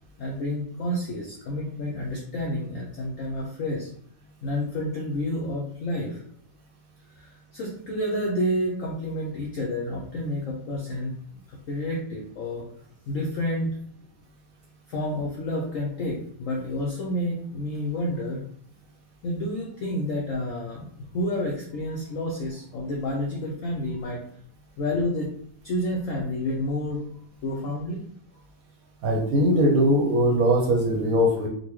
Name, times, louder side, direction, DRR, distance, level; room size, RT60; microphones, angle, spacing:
voice 1, 0.2-3.9 4.4-6.2 7.1-11.2 11.5-12.6 13.1-13.7 14.9-18.4 19.2-20.9 21.1-24.2 24.8-25.3 25.6-27.0 27.4-28.0, left 1 dB, 80° left, -2 dB, 0.7 m, -29 dB
voice 2, 29.0-31.5, equal, 65° right, -1 dB, 0.9 m, -21 dB
4.0 x 2.2 x 3.0 m, 0.63 s
omnidirectional pair, 2.0 m